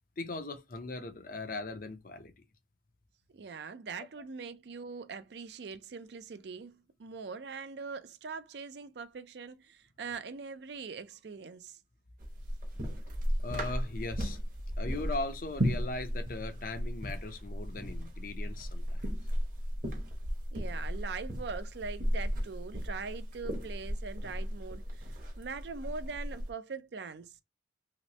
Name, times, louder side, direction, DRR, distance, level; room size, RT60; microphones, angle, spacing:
voice 1, 0.2-2.3 13.4-14.4 14.8-19.1, left 2 dB, 50° left, 0.6 m, -39 dB
voice 2, 3.3-11.8 12.8-13.0 20.5-27.4, right 5 dB, 65° right, 0.4 m, -42 dB
sound 1, 12.2-26.5, equal, 45° right, 0.9 m, -35 dB
3.1 x 3.0 x 2.9 m
head